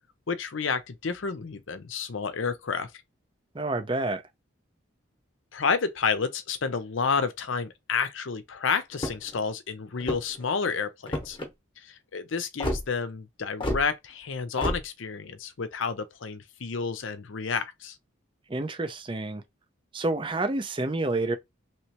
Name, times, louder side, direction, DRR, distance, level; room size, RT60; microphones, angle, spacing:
voice 1, 0.3-2.9 5.5-11.4 11.8-18.0, left 5 dB, 75° left, 0.6 m, -30 dB
voice 2, 3.5-4.2 18.5-19.4 19.9-21.4, right 2 dB, 25° right, 0.5 m, -28 dB
sound 1, 8.9-9.4 10.0-10.4 11.1-11.5 12.6-12.8 13.6-13.8 14.6-14.8, left 1 dB, 25° left, 1.0 m, -29 dB
3.1 x 3.0 x 2.9 m
head